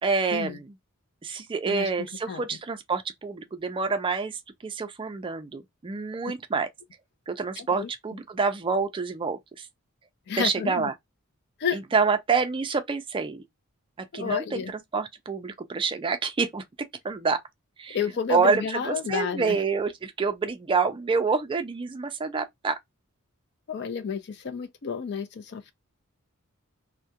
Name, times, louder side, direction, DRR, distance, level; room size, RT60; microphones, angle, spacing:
voice 1, 0.0-0.7 1.2-6.7 7.3-9.7 10.4-10.9 11.7-13.4 14.0-17.4 17.8-18.0 18.3-22.8, right 4 dB, 25° right, 0.3 m, -27 dB
voice 2, 7.6-7.9 10.3-10.9 11.6-11.8 14.1-14.7 17.9-19.6 23.7-25.7, left 6 dB, 50° left, 0.4 m, -30 dB
2.3 x 2.1 x 2.7 m
head